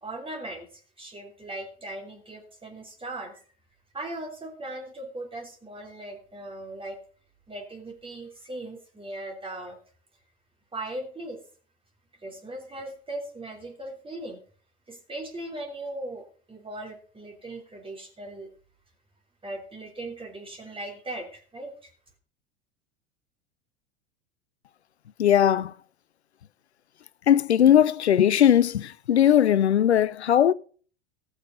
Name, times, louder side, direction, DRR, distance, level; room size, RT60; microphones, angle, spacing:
voice 1, 0.0-3.4 3.9-7.0 7.5-9.8 10.7-11.4 12.2-14.4 14.9-18.5 19.4-21.9, right 1 dB, 15° right, 3.1 m, -38 dB
voice 2, 25.2-25.7 27.3-30.5, left 10 dB, 80° left, 0.5 m, -19 dB
17.0 x 7.2 x 5.2 m
figure-of-eight pair, 85°, 33 cm